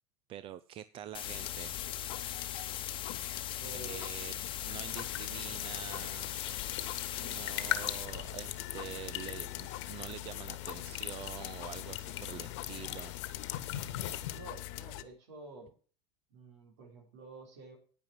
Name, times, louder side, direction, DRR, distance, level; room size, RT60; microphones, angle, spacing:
voice 1, 0.3-1.7 3.7-4.3 4.6-6.3 6.8-6.9 7.2-13.1, right 11 dB, 40° right, 14 dB, 0.6 m, -46 dB
sound 1, 1.1-8.1, left 10 dB, 35° left, 1.1 m, -40 dB
sound 2, 1.2-15.0, left 17 dB, 60° left, 0.9 m, -43 dB
voice 2, 3.6-4.1 14.3-15.7 16.3-17.8, right 3 dB, 85° right, 1 dB, 4.6 m, -50 dB
sound 3, 4.9-14.4, left 12 dB, 85° left, 1.6 m, -41 dB
10.5 x 9.3 x 4.7 m, 0.39 s
supercardioid pair, 115°, 15 cm